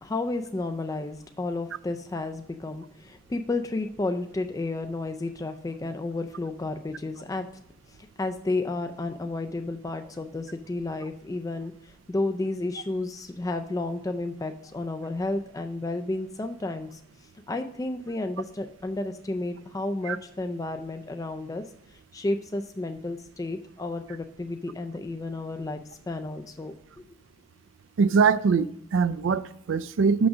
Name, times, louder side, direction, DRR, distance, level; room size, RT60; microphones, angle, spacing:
voice 1, 0.0-7.5 7.9-17.0 17.5-21.6 21.9-26.7, left 2 dB, 15° left, 0.3 m, -32 dB
voice 2, 28.0-30.3, right 5 dB, 65° right, 0.4 m, -22 dB
6.2 x 6.0 x 6.2 m
head